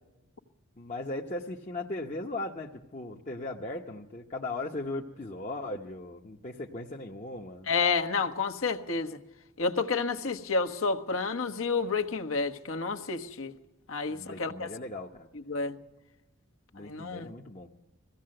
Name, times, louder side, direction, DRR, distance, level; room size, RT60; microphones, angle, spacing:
voice 1, 0.8-7.7 14.1-15.3 16.7-17.7, left 2 dB, 35° left, 1.0 m, -38 dB
voice 2, 7.7-9.2 9.6-13.5 13.9-14.7 15.3-15.8 16.8-17.3, left 4 dB, 70° left, 1.3 m, -30 dB
21.5 x 16.0 x 7.8 m
head